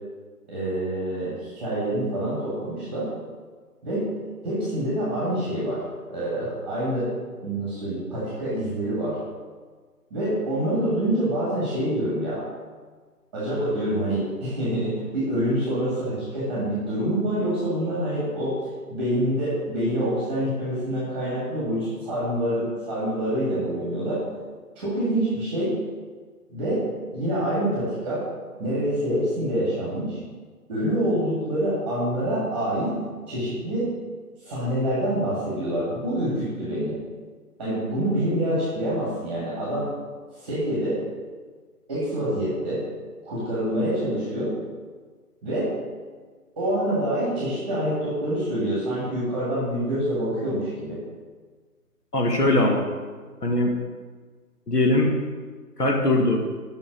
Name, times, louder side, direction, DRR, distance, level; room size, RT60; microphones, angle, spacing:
voice 1, 0.5-3.1 3.8-4.1 4.4-5.8 6.1-7.1 7.4-9.2 10.1-12.4 13.3-18.6 18.9-24.2 24.7-25.8 26.5-26.8 27.1-28.3 28.6-30.2 30.7-33.0 33.3-33.9 34.4-37.0 37.6-39.9 40.3-41.0 41.9-42.8 43.2-44.5 45.4-45.7 46.6-51.0, right 1 dB, 5° right, -9 dB, 1.3 m, -26 dB
voice 2, 52.1-52.9 53.4-53.7 54.7-55.1 55.8-56.4, left 2 dB, 80° left, 1 dB, 1.8 m, -20 dB
7.3 x 5.6 x 5.1 m, 1.5 s
figure-of-eight pair, 155°, 47 cm